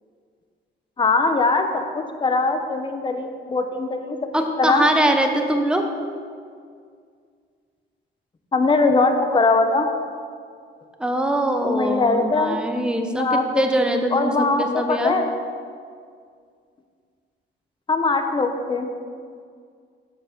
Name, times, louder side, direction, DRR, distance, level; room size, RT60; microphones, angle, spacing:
voice 1, 1.0-4.2 4.6-4.8 8.5-9.9 11.6-12.6 13.1-13.6 14.1-15.3 17.9-18.9, left 3 dB, 25° left, 6 dB, 0.8 m, -21 dB
voice 2, 4.3-5.8 11.0-15.1, right 1 dB, 5° right, 4 dB, 0.9 m, -22 dB
8.1 x 6.7 x 5.2 m, 2.1 s
cardioid pair, 90°, 20 cm